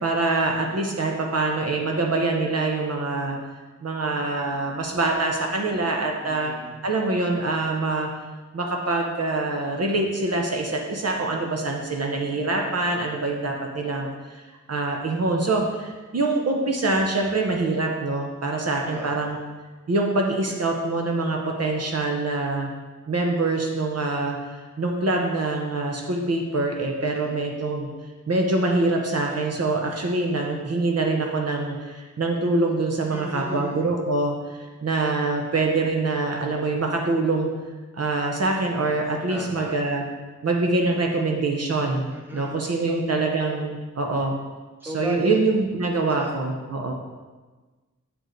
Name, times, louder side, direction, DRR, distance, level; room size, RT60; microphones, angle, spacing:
voice 1, 0.0-3.4 3.8-6.5 6.8-8.1 8.5-14.4 14.7-19.4 19.9-22.7 23.1-24.4 24.8-27.9 28.3-37.5 37.9-40.0 40.4-42.1 42.3-44.4 44.9-46.9, right 2 dB, 55° right, 1 dB, 0.8 m, -24 dB
voice 2, 6.2-6.8 18.9-19.3 27.0-27.4 33.1-33.9 39.3-39.7 42.1-42.9 44.2-44.3 44.8-45.4 46.1-46.3, right 1 dB, 5° right, -1 dB, 1.0 m, -35 dB
7.8 x 4.6 x 3.9 m, 1.3 s
wide cardioid pair, 125°, 31 cm